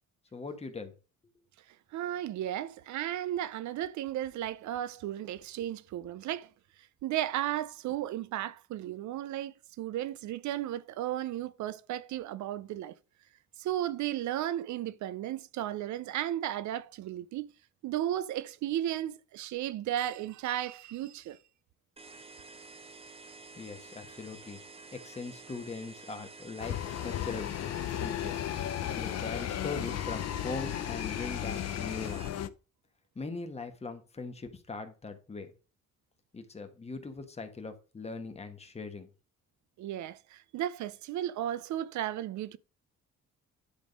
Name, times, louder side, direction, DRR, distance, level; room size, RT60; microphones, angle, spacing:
voice 1, 0.3-0.9 23.6-24.6 24.9-26.7 27.0-27.5 27.9-28.5 28.9-32.4 33.1-35.5 36.3-39.1, left 4 dB, 20° left, 1.2 m, -40 dB
voice 2, 1.9-6.5 7.0-12.9 13.6-17.5 17.8-21.4 39.8-42.6, right 12 dB, 75° right, 0.5 m, -34 dB
sound 1, 22.0-32.3, right 3 dB, 20° right, 0.7 m, -50 dB
sound 2, 26.6-32.5, left 11 dB, 60° left, 0.7 m, -34 dB
10.5 x 3.6 x 5.1 m
cardioid pair, 145°, 29 cm